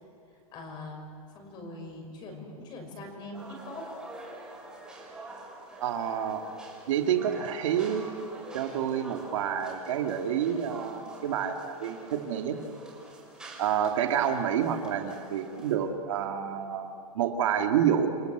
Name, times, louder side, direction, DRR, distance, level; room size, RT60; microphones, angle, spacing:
voice 1, 0.5-1.1 1.3-3.9, left 2 dB, 25° left, 3 dB, 5.8 m, -42 dB
sound 1, 3.3-15.7, right 2 dB, 5° right, 5.9 m, -47 dB
voice 2, 5.8-6.5 6.9-8.1 8.5-12.6 13.6-18.1, right 9 dB, 60° right, 4 dB, 2.3 m, -28 dB
30.0 x 23.5 x 8.1 m, 2.7 s
supercardioid pair, 170°, 18 cm